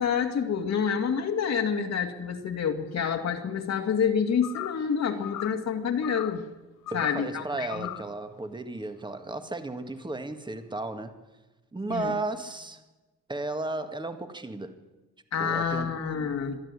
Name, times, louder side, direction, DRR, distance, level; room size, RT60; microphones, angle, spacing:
voice 1, 0.0-6.4 6.9-7.9 11.9-12.2 15.3-16.6, left 7 dB, 60° left, 4 dB, 2.2 m, -28 dB
sound 1, 4.4-4.9 5.2-5.7 6.0-6.4 6.9-7.3 7.7-8.1, left 14 dB, 90° left, 0.9 m, -38 dB
voice 2, 6.9-11.1 11.7-12.8 13.3-14.8 15.4-15.9, right 2 dB, 15° right, 8 dB, 1.9 m, -34 dB
23.0 x 12.5 x 9.8 m, 1.2 s
cardioid pair, 90°, 30 cm